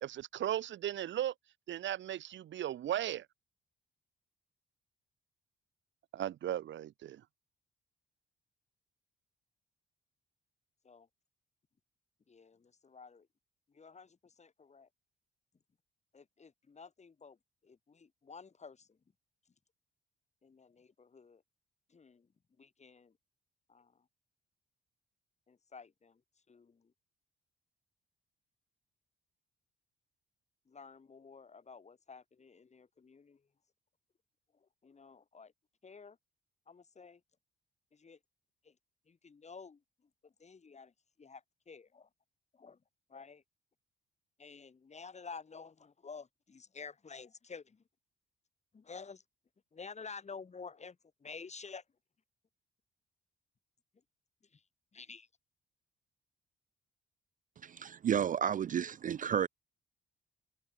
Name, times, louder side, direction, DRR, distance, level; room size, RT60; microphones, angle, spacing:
voice 1, 0.0-1.3 1.7-3.2 6.1-7.2, right 11 dB, 70° right, 1.6 m, -36 dB
voice 2, 12.3-13.3 13.7-14.9 16.1-17.4 17.6-19.0 20.4-21.4 21.9-22.3 22.6-23.1 23.7-24.0 25.5-26.2 26.5-26.9 30.7-33.4 34.6-35.5 35.8-36.2 36.7-37.2 37.9-38.2 38.6-38.7 39.1-39.8 40.2-40.9 41.2-42.1 42.5-42.8 43.1-43.4 44.4-47.8 48.7-49.2 49.7-51.8 54.5-54.6 54.9-55.3, left 5 dB, 35° left, 4.8 m, -51 dB
voice 3, 57.6-59.5, right 9 dB, 40° right, 0.4 m, -32 dB
cardioid pair, 90°, 20 cm